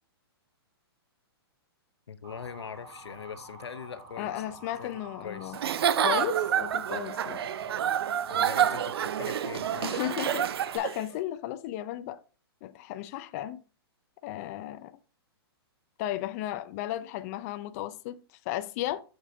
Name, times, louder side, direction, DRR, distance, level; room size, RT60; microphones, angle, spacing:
voice 1, 2.1-5.5 8.3-10.0 10.3-10.4, left 7 dB, 90° left, 0.8 m, -42 dB
Motor vehicle (road) / Siren, 2.2-10.8, right 1 dB, 30° right, 3.8 m, -48 dB
voice 2, 4.2-5.6 6.0-7.4 9.8-10.5 10.7-12.2 12.6-13.6 14.2-14.9 16.0-19.0, left 13 dB, 35° left, 0.5 m, -34 dB
Giggle / Chuckle chortle, 5.5-11.0, right 9 dB, 70° right, 0.5 m, -28 dB
8.8 x 6.1 x 2.7 m
hypercardioid pair, 140°, 14 cm